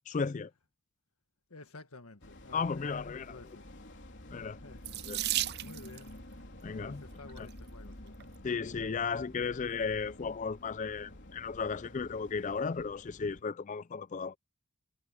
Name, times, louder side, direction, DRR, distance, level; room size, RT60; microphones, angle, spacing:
voice 1, 0.1-0.5 2.5-3.4 4.3-4.6 5.1-5.2 6.6-7.0 7.4-7.5 8.4-14.4, left 5 dB, 35° left, 0.4 m, -35 dB
voice 2, 1.5-3.7 4.4-6.2 6.8-8.3, left 3 dB, 75° left, 1.7 m, -53 dB
sound 1, 2.2-13.4, left 1 dB, 50° left, 3.8 m, -50 dB
Water tap faucet / Sink (filling or washing), 4.8-6.1 7.1-7.5 8.2-8.3 8.6-8.8, right 14 dB, 45° right, 0.5 m, -34 dB
head